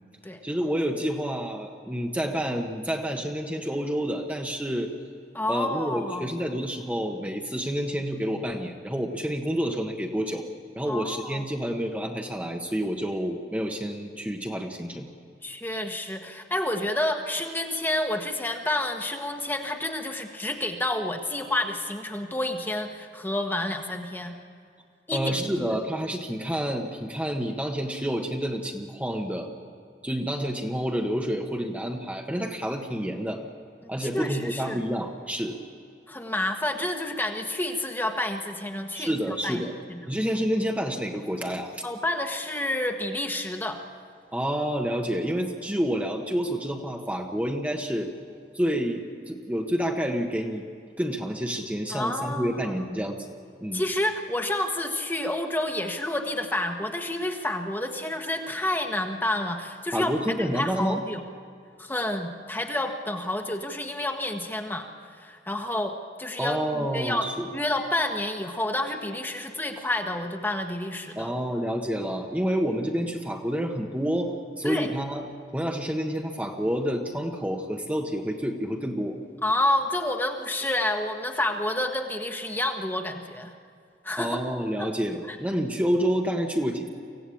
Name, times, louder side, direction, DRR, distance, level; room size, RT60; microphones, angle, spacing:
voice 1, 0.4-4.9 5.5-10.4 10.7-15.1 25.1-29.5 30.0-33.4 33.9-35.6 38.9-39.7 40.1-41.8 44.3-48.1 48.5-50.6 51.0-53.3 53.6-53.8 59.9-61.0 66.4-67.5 71.1-75.2 75.5-79.2 84.2-86.9, equal, 10° right, 2 dB, 1.3 m, -29 dB
voice 2, 5.3-6.2 10.9-11.4 15.4-24.3 25.1-25.6 33.8-34.8 36.1-40.0 41.8-43.8 51.9-52.8 53.7-60.1 60.4-61.2 61.8-64.9 65.1-71.3 74.6-74.9 79.4-83.5 84.0-84.4 84.8-84.9 85.3-85.4, left 1 dB, 10° left, 4 dB, 1.5 m, -29 dB
25.0 x 16.0 x 8.6 m, 2.4 s
head